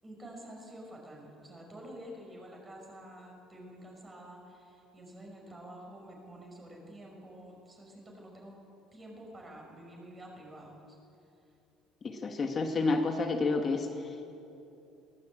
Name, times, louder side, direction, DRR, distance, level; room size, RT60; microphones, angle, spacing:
voice 1, 0.0-8.6 8.9-11.0, right 1 dB, 15° right, 0 dB, 5.7 m, -49 dB
voice 2, 12.0-14.1, left 3 dB, 25° left, 4 dB, 1.3 m, -30 dB
22.0 x 18.0 x 8.7 m, 2.8 s
cardioid pair, 165°, 0 cm